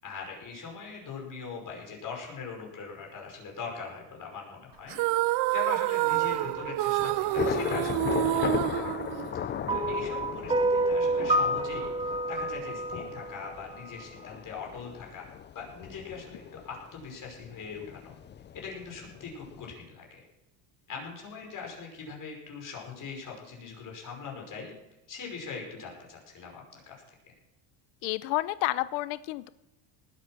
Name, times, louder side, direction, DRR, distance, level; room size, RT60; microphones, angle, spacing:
voice 1, 0.0-5.0 5.3-8.8 9.1-15.3 15.5-18.1 18.5-20.2 20.9-24.7 25.1-27.0, left 5 dB, 40° left, 0 dB, 5.5 m, -41 dB
sound 1, 4.9-9.7, right 19 dB, 60° right, 0.5 m, -28 dB
Thunder / Rain, 6.1-19.7, left 9 dB, 25° left, 0.4 m, -37 dB
sound 2, 9.7-14.0, right 1 dB, 10° right, 1.6 m, -28 dB
voice 2, 28.0-29.5, left 18 dB, 80° left, 16 dB, 0.8 m, -30 dB
19.0 x 8.6 x 6.1 m, 0.95 s
cardioid pair, 120°, 48 cm